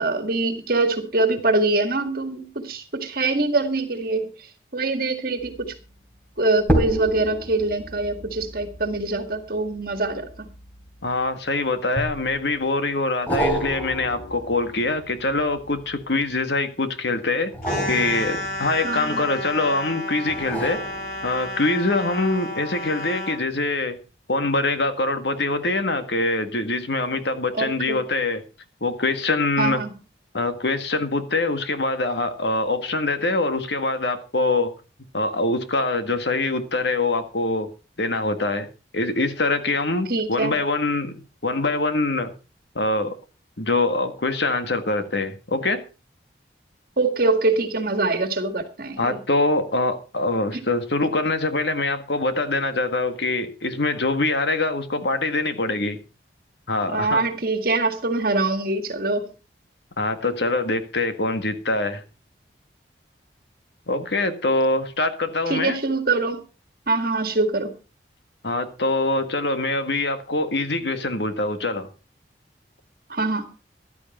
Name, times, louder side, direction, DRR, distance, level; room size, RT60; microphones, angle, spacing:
voice 1, 0.0-4.3 4.7-5.7 6.4-10.5 18.8-19.2 27.5-28.0 29.6-29.9 40.1-40.5 47.0-49.2 50.5-50.6 56.9-59.3 65.5-66.4 66.9-67.7 73.1-73.5, right 2 dB, 55° right, 8 dB, 1.9 m, -24 dB
sound 1, 5.4-5.7 6.6-11.3 12.0-12.6 13.3-16.2 17.4-19.5 20.3-21.7 22.2-22.3, right 1 dB, 10° left, 3.3 m, -30 dB
voice 2, 11.0-17.5 17.9-20.8 21.2-24.0 24.3-28.4 28.8-29.8 30.3-34.7 35.1-37.7 38.0-38.7 38.9-41.1 41.4-42.3 42.8-43.2 43.6-45.8 49.0-56.0 56.7-57.2 60.0-62.0 63.9-65.8 68.4-71.9, left 2 dB, 75° left, 9 dB, 1.7 m, -24 dB
sound 2, 17.6-23.4, left 1 dB, 50° left, 3.4 m, -32 dB
14.5 x 12.0 x 4.3 m, 0.32 s
head